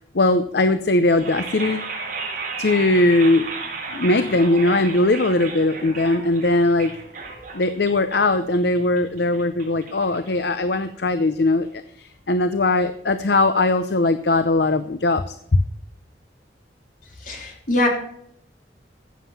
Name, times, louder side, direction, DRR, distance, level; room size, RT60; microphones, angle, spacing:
voice 1, 0.1-1.9 2.6-3.5 3.9-6.9 7.5-15.6, left 2 dB, 65° left, 11 dB, 0.7 m, -20 dB
sound 1, 1.1-11.1, right 4 dB, 50° right, 4.1 m, -34 dB
voice 2, 17.2-17.9, left 1 dB, 50° left, 1 dB, 3.5 m, -22 dB
15.0 x 7.5 x 5.7 m, 0.67 s
head